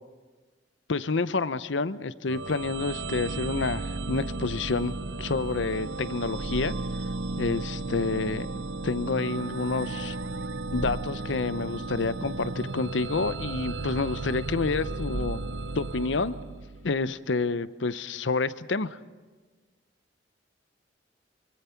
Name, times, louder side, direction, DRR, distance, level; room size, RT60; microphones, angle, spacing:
voice 1, 0.9-6.7 7.4-10.2 10.7-15.4 15.7-16.4 16.8-19.0, left 3 dB, 90° left, 15 dB, 0.7 m, -29 dB
sound 1, 2.3-17.0, right 3 dB, 80° right, 0.8 m, -34 dB
25.0 x 23.0 x 5.8 m, 1.4 s
head